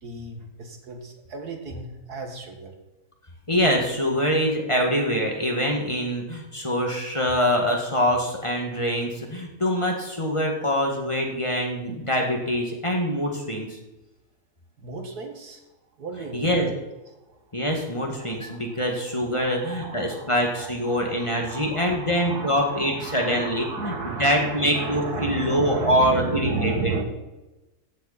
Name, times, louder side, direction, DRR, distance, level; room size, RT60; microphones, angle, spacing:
voice 1, 0.0-2.7 14.8-15.6 16.0-16.7 18.1-27.0, right 3 dB, 90° right, 3 dB, 2.3 m, -34 dB
voice 2, 3.5-13.8 16.3-16.7 17.5-26.9, equal, 20° left, 1 dB, 1.9 m, -24 dB
14.5 x 8.1 x 4.2 m, 1.0 s
omnidirectional pair, 1.6 m